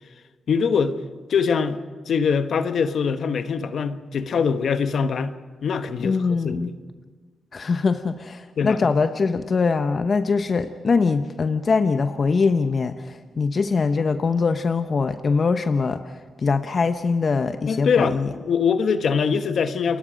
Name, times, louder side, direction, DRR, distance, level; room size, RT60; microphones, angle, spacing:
voice 1, 0.5-1.0 1.3-5.3 5.6-6.7 8.6-8.8 17.7-18.2 18.4-20.0, left 6 dB, 70° left, 1.1 m, -23 dB
voice 2, 6.0-6.7 7.5-18.3, left 4 dB, 50° left, 0.9 m, -22 dB
29.0 x 21.0 x 5.2 m
cardioid pair, 65°, 0 cm